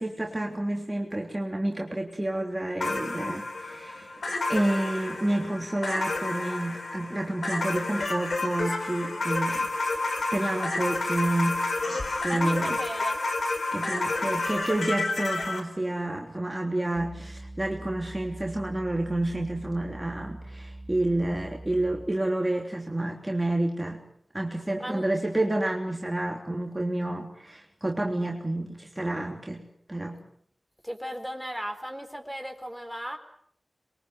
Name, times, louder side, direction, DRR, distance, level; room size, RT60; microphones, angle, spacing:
voice 1, 0.0-4.1 4.5-9.7 9.9-10.0 10.3-11.6 12.2-12.7 13.7-24.0 24.3-29.6 29.9-30.2, right 1 dB, 20° right, 0 dB, 3.2 m, -29 dB
sound 1, 2.8-15.6, left 2 dB, 70° left, 4.4 m, -30 dB
voice 2, 12.3-13.2 24.8-25.0 30.8-33.2, equal, ahead, 7 dB, 4.2 m, -36 dB
sound 2, 17.0-22.2, right 1 dB, 20° left, 3.8 m, -43 dB
27.0 x 23.0 x 8.0 m, 0.66 s
wide cardioid pair, 95°, 0 cm